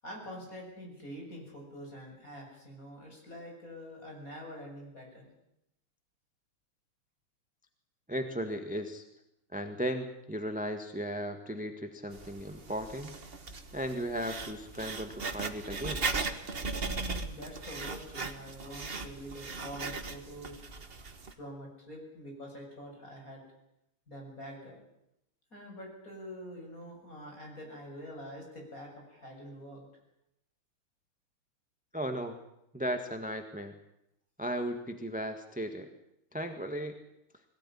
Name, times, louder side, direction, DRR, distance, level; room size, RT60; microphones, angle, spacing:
voice 1, 0.0-5.3 16.8-20.6 21.3-23.4 24.1-24.8 25.5-29.8, equal, 35° left, 0 dB, 7.6 m, -46 dB
voice 2, 8.1-9.0 9.5-13.1 13.7-16.0 31.9-32.4 32.7-33.8 34.4-35.9 36.3-36.9, equal, 5° right, 6 dB, 1.2 m, -36 dB
Writing, 12.1-21.3, right 4 dB, 30° right, 1.5 m, -38 dB
22.0 x 17.0 x 10.0 m, 0.83 s
omnidirectional pair, 2.4 m